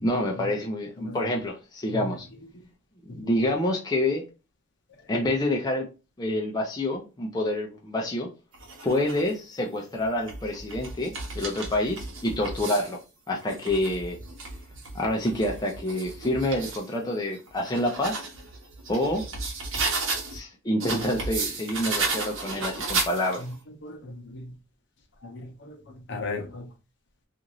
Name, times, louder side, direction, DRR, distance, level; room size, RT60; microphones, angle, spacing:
voice 1, 0.0-2.3 3.1-4.2 5.1-5.9 6.2-8.3 8.8-13.0 13.3-14.2 14.9-18.3 18.9-19.3 20.3-23.4, left 1 dB, 20° left, 0.5 m, -27 dB
sound 1, 8.5-9.3 10.0-13.0 13.4-16.9 17.3-20.4 20.8-23.5, right 3 dB, 75° right, 1.0 m, -33 dB
voice 2, 23.8-24.5 25.2-25.8 26.1-26.7, left 3 dB, 60° left, 0.7 m, -36 dB
2.5 x 2.5 x 3.0 m
head